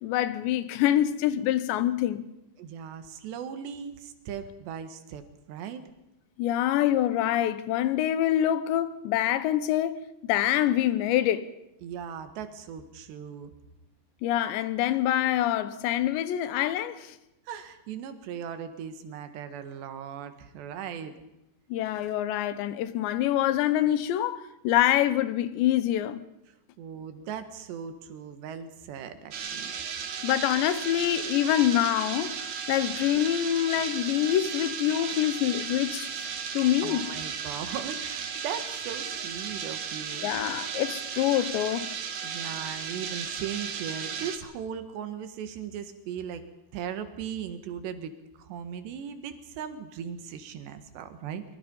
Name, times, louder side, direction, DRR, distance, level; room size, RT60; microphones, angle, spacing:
voice 1, 0.0-2.3 6.4-11.5 14.2-17.2 21.7-26.2 30.2-37.1 40.2-41.9, left 12 dB, 80° left, 3.2 m, -26 dB
voice 2, 2.6-5.2 5.5-5.9 11.8-13.5 17.5-21.1 26.8-29.7 36.8-40.3 42.2-46.4 46.7-51.4, right 8 dB, 75° right, 3.7 m, -38 dB
sound 1, 29.3-44.4, right 7 dB, 55° right, 2.2 m, -35 dB
24.5 x 23.5 x 5.5 m
omnidirectional pair, 5.2 m